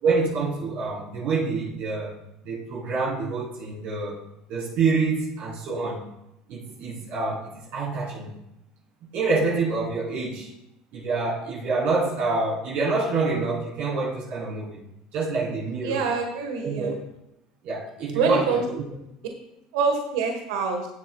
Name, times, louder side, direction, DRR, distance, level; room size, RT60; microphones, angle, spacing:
voice 1, 0.0-2.1 2.4-4.2 4.5-6.0 6.5-8.3 9.1-10.5 10.9-14.8 15.1-16.0 16.6-17.0 17.6-18.8, right 3 dB, 60° right, -4 dB, 3.2 m, -26 dB
voice 2, 15.8-17.0 18.1-18.6 19.7-20.9, right 5 dB, 80° right, 4 dB, 1.3 m, -25 dB
16.5 x 8.0 x 2.3 m, 0.87 s
hypercardioid pair, 85°, 3 cm